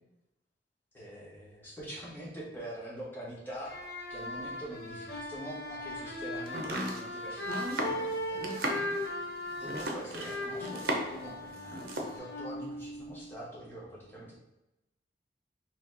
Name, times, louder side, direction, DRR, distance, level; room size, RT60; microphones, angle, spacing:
voice 1, 0.9-3.7 4.1-8.4 8.7-8.9 9.6-14.5, right 1 dB, 10° left, -6 dB, 1.2 m, -44 dB
sound 1, 3.6-13.3, left 1 dB, 65° left, 0.8 m, -38 dB
Domestic sounds home sounds, 6.5-11.3 11.5-12.2, right 1 dB, 55° right, 0.7 m, -35 dB
4.3 x 2.9 x 3.9 m, 0.95 s
head